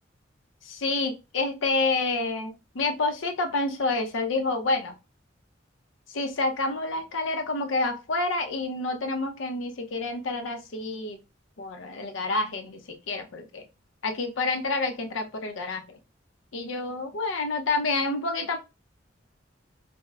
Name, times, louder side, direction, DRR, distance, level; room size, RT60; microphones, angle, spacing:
voice 1, 0.6-4.9 6.1-11.2 11.6-13.6 14.0-16.0 16.5-18.6, left 3 dB, 85° left, 4 dB, 0.6 m, -28 dB
4.4 x 2.0 x 2.3 m, 0.28 s
head